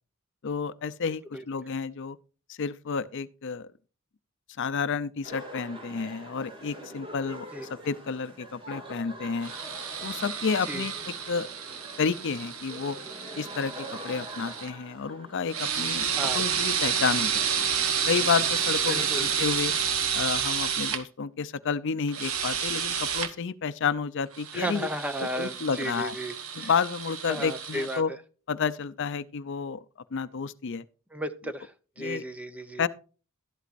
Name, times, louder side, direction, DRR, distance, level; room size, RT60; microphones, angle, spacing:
voice 1, 0.4-2.2 2.5-3.7 4.6-7.5 7.8-9.5 10.0-11.5 12.0-13.0 13.4-13.7 14.0-16.1 16.3-17.7 18.1-19.7 20.1-24.9 25.2-26.1 26.5-28.1 28.5-29.8 30.1-30.8 32.0-32.2 32.8-32.9, left 5 dB, 60° left, 0.5 m, -30 dB
sound 1, 5.2-15.4, equal, 25° right, 2.3 m, -44 dB
sound 2, 9.4-14.7 15.5-21.0 22.1-23.3 24.3-28.0, right 7 dB, 90° right, 1.2 m, -30 dB
voice 2, 18.9-19.2 24.5-26.7 27.3-28.2 31.1-32.8, right 1 dB, 5° right, 0.7 m, -34 dB
12.5 x 11.5 x 2.5 m
head